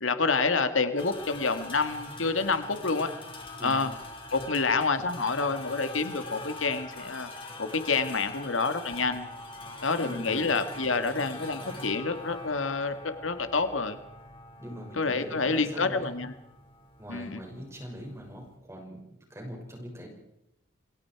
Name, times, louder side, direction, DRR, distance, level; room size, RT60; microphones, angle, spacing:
voice 1, 0.0-3.1 3.6-3.9 4.3-7.3 7.6-9.3 9.8-14.0 14.9-16.3 17.1-17.4, left 4 dB, 90° left, 9 dB, 1.9 m, -28 dB
sound 1, 1.0-18.5, left 2 dB, 30° left, 4.7 m, -44 dB
voice 2, 10.0-10.5 14.6-16.1 17.0-19.0 19.3-20.1, equal, 15° right, 1 dB, 6.1 m, -42 dB
28.5 x 23.5 x 4.8 m, 0.87 s
head